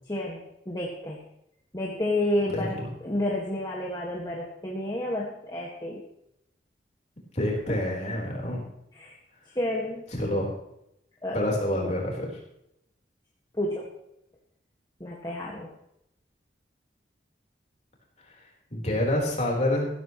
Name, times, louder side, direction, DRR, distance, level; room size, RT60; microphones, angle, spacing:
voice 1, 0.1-1.2 1.7-2.8 3.0-6.0 7.7-7.8 8.9-9.2 9.6-10.0 11.2-11.5 13.5-13.9 15.0-15.7, left 1 dB, 20° left, -3 dB, 1.9 m, -30 dB
voice 2, 2.5-2.9 7.3-8.6 10.1-10.5 11.3-12.4 18.3-18.4 18.7-19.9, left 1 dB, 40° left, -1 dB, 4.3 m, -27 dB
15.5 x 14.5 x 3.2 m, 0.81 s
head